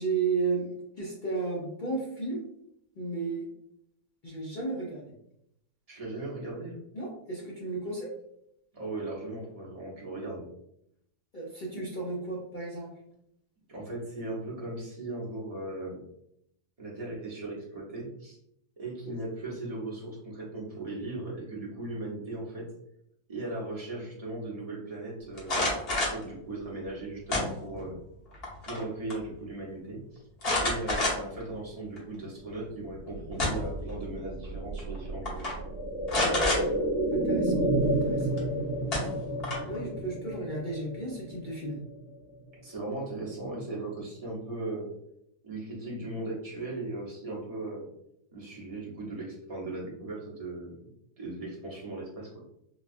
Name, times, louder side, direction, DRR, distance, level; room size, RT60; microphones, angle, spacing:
voice 1, 0.0-2.4 3.0-3.5 4.2-5.1 6.9-8.1 11.3-12.9 19.0-19.1 36.2-36.8 37.1-37.6 38.0-38.4 39.7-41.8, right 3 dB, 60° left, -4 dB, 0.5 m, -34 dB
voice 2, 5.9-6.8 8.7-10.5 13.7-16.0 16.8-18.4 18.8-22.7 23.3-28.0 28.7-30.2 30.6-35.6 42.5-44.9 45.4-47.9 48.3-50.8 51.2-52.3, right 2 dB, 30° right, -5 dB, 0.8 m, -38 dB
sound 1, 25.4-26.2 27.3-27.9 28.3-28.8 29.1-29.2 30.4-31.4 32.0-32.1 33.1-33.8 34.8-35.0 35.3-35.5 36.1-36.6 38.4-38.5 38.9-39.8, left 2 dB, 40° left, 1.2 m, -28 dB
sound 2, 32.8-42.6 42.9-43.0, right 1 dB, 45° right, 1.1 m, -31 dB
4.0 x 2.3 x 2.5 m, 0.76 s
omnidirectional pair, 1.7 m